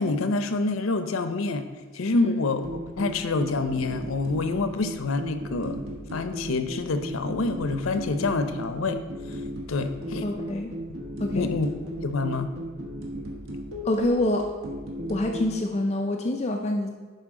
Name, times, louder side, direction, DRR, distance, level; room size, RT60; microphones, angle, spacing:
voice 1, 0.0-1.6 1.9-2.6 3.0-5.8 6.1-9.0 9.7-10.3 11.4-11.7 12.0-12.5, left 3 dB, 85° left, 9 dB, 0.6 m, -27 dB
sound 1, 2.6-15.5, equal, 80° right, 1.3 m, -36 dB
voice 2, 10.2-10.7 11.2-11.5 13.8-14.5 15.1-16.9, left 1 dB, 35° left, 3 dB, 0.5 m, -26 dB
11.0 x 4.5 x 3.7 m, 1.4 s
head